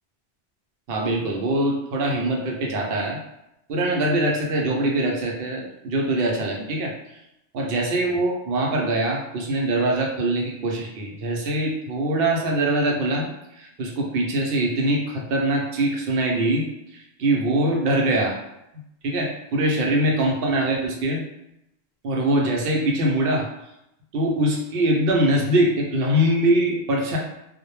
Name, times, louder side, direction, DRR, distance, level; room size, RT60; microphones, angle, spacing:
voice 1, 0.9-3.2 3.7-6.9 7.5-13.3 13.5-18.4 19.0-21.2 22.0-23.5 24.1-27.2, right 1 dB, 65° right, 0 dB, 0.7 m, -23 dB
2.1 x 2.1 x 2.9 m, 0.85 s
omnidirectional pair, 1.1 m